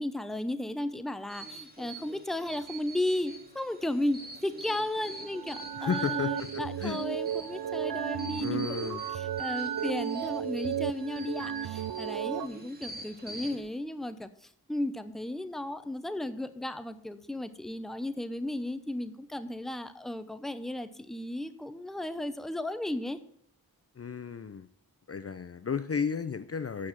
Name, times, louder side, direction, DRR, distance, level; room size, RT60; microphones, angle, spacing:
voice 1, 0.0-23.2, left 1 dB, ahead, 11 dB, 0.6 m, -35 dB
sound 1, 1.3-13.6, right 1 dB, 25° right, 2.2 m, -46 dB
sound 2, 5.1-12.5, right 9 dB, 80° right, 0.5 m, -34 dB
voice 2, 5.8-6.5 6.8-7.0 8.4-9.1 24.0-24.7 25.1-26.9, left 6 dB, 40° left, 13 dB, 0.5 m, -33 dB
8.7 x 6.2 x 5.6 m, 0.66 s
wide cardioid pair, 50°, 36 cm